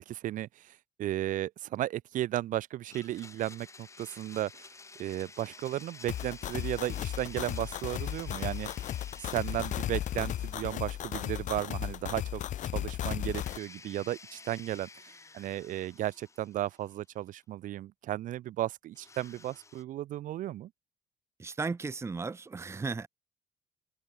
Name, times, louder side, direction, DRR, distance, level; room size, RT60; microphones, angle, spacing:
voice 1, 0.0-4.7 5.0-8.7 9.2-14.9 15.3-20.7, right 13 dB, 65° right, 1.2 m, -35 dB
Domestic sounds home sounds, 2.9-12.1 12.3-12.4 13.2-17.1 18.9-19.8, left 3 dB, 20° left, 3.9 m, -52 dB
sound 1, 6.1-13.6, left 12 dB, 60° left, 1.8 m, -35 dB
voice 2, 21.4-23.1, right 4 dB, 20° right, 0.9 m, -35 dB
cardioid pair, 115°, 14 cm